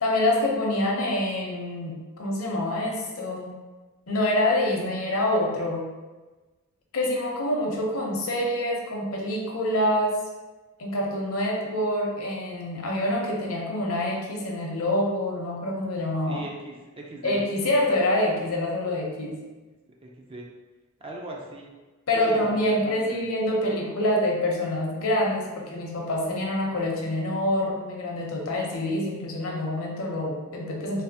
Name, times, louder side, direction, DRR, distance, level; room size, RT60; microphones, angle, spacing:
voice 1, 0.0-3.5 4.1-5.8 6.9-10.1 10.8-16.4 17.2-19.4 22.1-31.0, left 1 dB, 65° left, -2 dB, 0.7 m, -26 dB
voice 2, 16.3-17.4 20.0-20.4 21.0-21.7 22.1-22.5 22.8-23.2, right 2 dB, 25° right, -1 dB, 0.4 m, -39 dB
3.3 x 2.4 x 2.7 m, 1.2 s
head